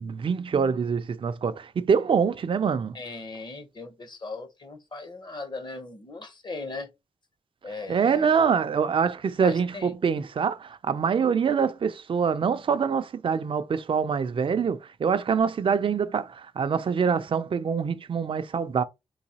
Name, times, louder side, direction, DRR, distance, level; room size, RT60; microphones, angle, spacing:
voice 1, 0.0-2.9 7.9-18.8, right 6 dB, 45° right, 0.4 m, -25 dB
voice 2, 2.9-6.9 7.6-8.3 9.4-9.9 11.2-11.3, left 3 dB, 35° left, 0.8 m, -38 dB
3.9 x 2.6 x 2.8 m
wide cardioid pair, 100°, 12 cm